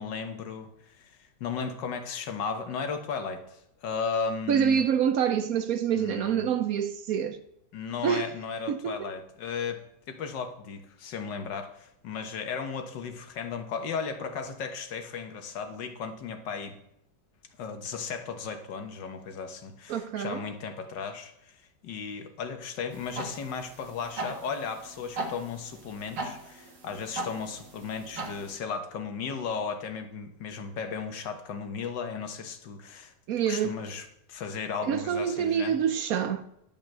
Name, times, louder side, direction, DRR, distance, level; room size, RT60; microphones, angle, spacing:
voice 1, 0.0-4.8 6.0-6.5 7.7-9.8 10.1-16.8 17.6-33.1 33.5-35.8, left 5 dB, 80° left, 1.8 m, -35 dB
voice 2, 4.5-7.4 8.0-8.3 8.7-9.1 19.9-20.4 33.3-33.8 34.9-36.4, right 8 dB, 65° right, 0.9 m, -26 dB
sound 1, 22.9-28.6, right 2 dB, 85° right, 2.3 m, -39 dB
11.0 x 5.4 x 7.4 m
omnidirectional pair, 1.9 m